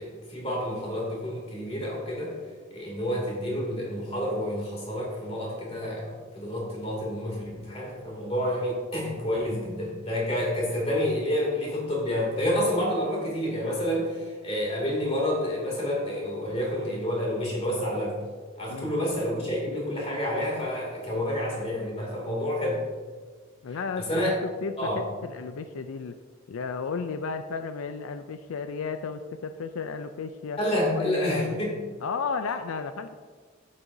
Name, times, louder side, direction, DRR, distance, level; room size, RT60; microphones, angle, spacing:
voice 1, 0.0-2.4 2.7-18.2 18.6-22.8 24.0-24.3 24.8-25.0 30.6-31.7, left 1 dB, 30° left, -3 dB, 2.6 m, -29 dB
voice 2, 23.6-26.2 26.5-30.6 30.9-31.6 32.0-33.1, left 5 dB, 85° left, 9 dB, 0.4 m, -33 dB
11.0 x 8.7 x 2.7 m, 1.5 s
head